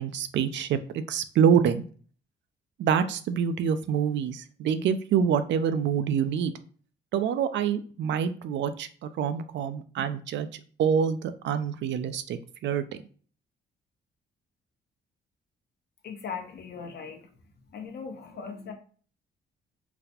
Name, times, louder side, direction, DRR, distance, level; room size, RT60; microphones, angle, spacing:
voice 1, 0.0-1.8 2.8-6.5 7.1-12.8, right 7 dB, 65° right, 11 dB, 0.4 m, -26 dB
voice 2, 16.0-17.3 17.7-18.7, left 6 dB, 55° left, 4 dB, 0.8 m, -39 dB
4.0 x 2.1 x 2.8 m, 0.43 s
cardioid pair, 90°, 20 cm